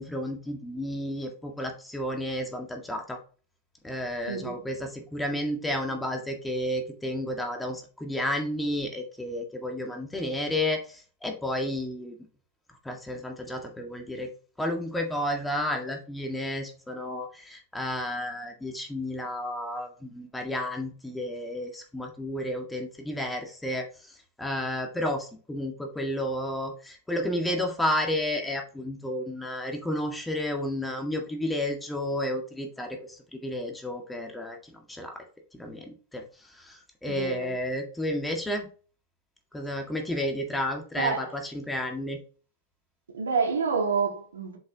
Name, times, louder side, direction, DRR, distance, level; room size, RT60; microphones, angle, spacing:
voice 1, 0.0-3.2 3.8-12.1 12.8-14.3 14.6-23.8 24.4-34.6 34.9-35.2 35.5-36.2 36.6-38.7 39.5-42.2, left 1 dB, 10° left, 1.8 m, -31 dB
voice 2, 4.3-4.6 37.1-37.5 41.0-41.3 43.1-44.6, right 5 dB, 85° right, 1.9 m, -28 dB
7.6 x 5.4 x 2.8 m
hypercardioid pair, 100°, 0 cm